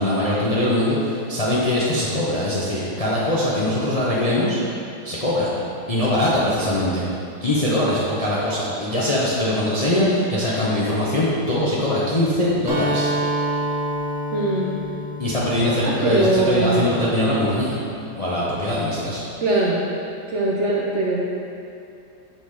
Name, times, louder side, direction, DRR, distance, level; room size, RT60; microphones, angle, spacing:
voice 1, 0.0-4.6 5.0-5.5 5.9-7.0 7.4-13.1 15.2-17.8 18.2-19.2, left 1 dB, 35° left, -8 dB, 0.6 m, -22 dB
Acoustic guitar, 12.7-16.5, right 1 dB, 45° right, 1.6 m, -27 dB
voice 2, 14.3-14.8 15.8-16.9 19.4-19.8 20.3-21.2, right 2 dB, 60° right, -4 dB, 0.8 m, -21 dB
6.8 x 3.8 x 4.8 m, 2.6 s
omnidirectional pair, 1.8 m